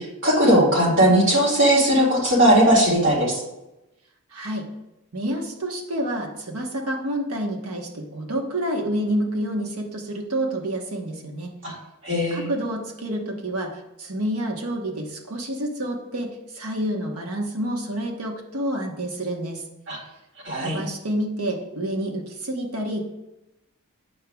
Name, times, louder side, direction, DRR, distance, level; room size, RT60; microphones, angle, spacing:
voice 1, 0.0-3.4 11.6-11.7 12.0-12.5 19.9-20.0 20.4-20.8, right 1 dB, 55° right, -4 dB, 2.3 m, -18 dB
voice 2, 4.3-4.7 5.1-11.5 12.3-19.6 20.6-23.0, right 1 dB, 75° right, 1 dB, 1.2 m, -28 dB
8.3 x 6.8 x 2.3 m, 0.93 s
head